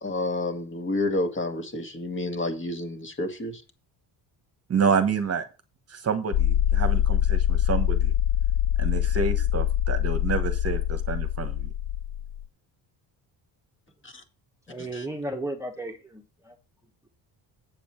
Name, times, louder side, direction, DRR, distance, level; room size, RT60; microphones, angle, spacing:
voice 1, 0.0-3.6 14.0-14.1 14.9-15.1, left 2 dB, 25° left, 1.8 m, -29 dB
voice 2, 4.7-5.4 5.9-8.1 8.8-11.7, right 6 dB, 35° right, 1.2 m, -28 dB
sound 1, 6.3-12.5, left 11 dB, 45° left, 0.4 m, -24 dB
voice 3, 14.7-16.5, right 1 dB, 5° right, 1.2 m, -34 dB
8.2 x 7.0 x 4.4 m
cardioid pair, 135°, 43 cm